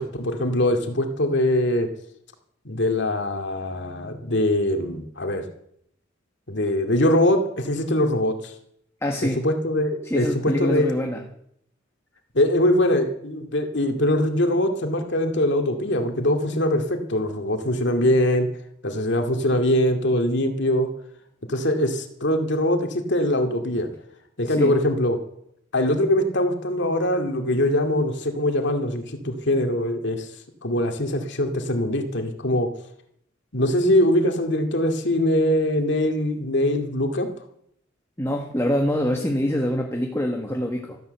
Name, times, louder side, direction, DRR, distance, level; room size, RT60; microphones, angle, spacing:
voice 1, 0.0-1.9 2.6-5.4 6.5-8.5 9.4-10.9 12.3-18.5 18.8-20.9 21.5-23.9 24.4-25.2 25.7-30.3 30.6-32.7 33.5-37.3, left 1 dB, 65° left, 5 dB, 2.3 m, -22 dB
voice 2, 9.0-9.4 10.1-11.2 24.5-24.8 38.2-41.0, left 1 dB, 15° left, 2 dB, 1.6 m, -25 dB
14.0 x 12.0 x 8.0 m, 0.71 s
head